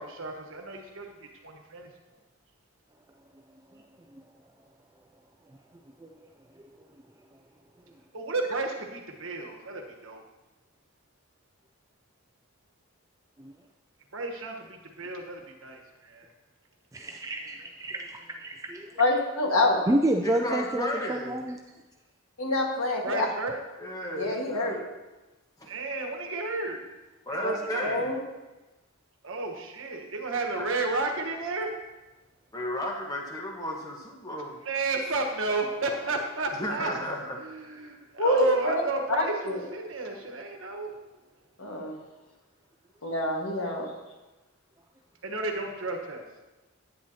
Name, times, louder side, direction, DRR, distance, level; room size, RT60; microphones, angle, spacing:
voice 1, 0.0-1.9 8.1-10.2 14.1-16.3 23.0-23.6 25.7-26.8 27.3-28.0 29.2-31.8 34.6-36.9 37.4-40.9 45.2-46.2, right 3 dB, 65° right, 3 dB, 1.2 m, -32 dB
voice 2, 16.9-19.0 19.9-21.6, right 1 dB, 15° right, 3 dB, 0.3 m, -29 dB
voice 3, 19.0-19.8 22.4-23.3 24.2-24.8 27.4-27.5 27.8-28.2 38.2-38.8 39.1-39.6 41.6-41.9 43.0-43.9, left 1 dB, 75° left, 0 dB, 1.6 m, -26 dB
voice 4, 20.2-21.4 23.8-24.8 25.6-25.7 27.3-28.1 30.5-30.6 32.5-34.6 36.6-37.4 37.6-37.9, equal, 15° left, 0 dB, 1.3 m, -34 dB
10.5 x 9.0 x 2.8 m, 1.1 s
head